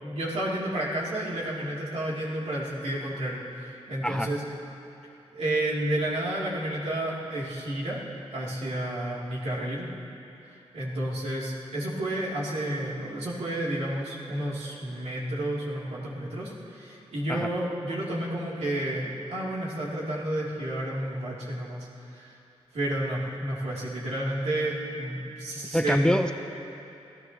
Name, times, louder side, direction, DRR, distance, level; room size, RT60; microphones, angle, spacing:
voice 1, 0.0-4.4 5.3-8.0 8.3-9.9 10.7-22.3 22.7-26.0, right 1 dB, 85° right, -5 dB, 3.3 m, -31 dB
voice 2, 25.7-26.3, equal, 5° left, 6 dB, 0.6 m, -24 dB
28.0 x 15.5 x 3.1 m, 2.9 s
wide cardioid pair, 95°, 11 cm